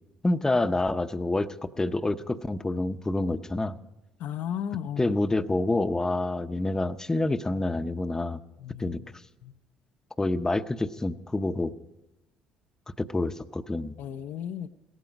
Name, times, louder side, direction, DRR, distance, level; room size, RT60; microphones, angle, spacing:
voice 1, 0.2-3.7 5.0-8.4 8.8-9.0 10.2-11.7 13.0-13.9, left 2 dB, 15° left, 10 dB, 0.7 m, -27 dB
voice 2, 4.2-5.1 8.6-9.0 9.4-9.5 14.0-14.7, left 9 dB, 65° left, 8 dB, 0.6 m, -34 dB
17.0 x 14.5 x 5.2 m, 0.98 s
hypercardioid pair, 60°, 4 cm